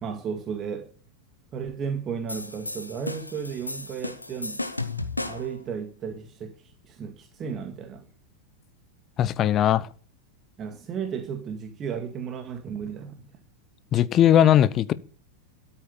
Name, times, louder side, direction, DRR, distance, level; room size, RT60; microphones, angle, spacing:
voice 1, 0.0-0.9 1.5-4.6 5.2-8.1 10.6-13.3, right 7 dB, 30° right, 2.0 m, -34 dB
sound 1, 2.3-5.6, left 2 dB, 85° left, 1.3 m, -34 dB
voice 2, 9.2-9.9 13.9-14.9, left 11 dB, 30° left, 0.9 m, -19 dB
13.5 x 8.9 x 8.8 m
figure-of-eight pair, 90°, 0 cm